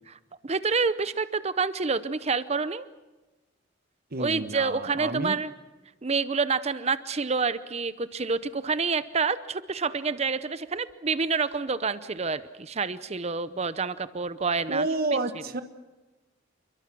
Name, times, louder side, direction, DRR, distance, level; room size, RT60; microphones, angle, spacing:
voice 1, 0.1-2.9 4.2-5.5 6.0-14.9, right 4 dB, 35° right, 14 dB, 0.7 m, -28 dB
voice 2, 4.1-5.3 14.7-15.6, right 2 dB, 50° right, 9 dB, 1.3 m, -29 dB
29.0 x 22.5 x 6.2 m, 1.1 s
head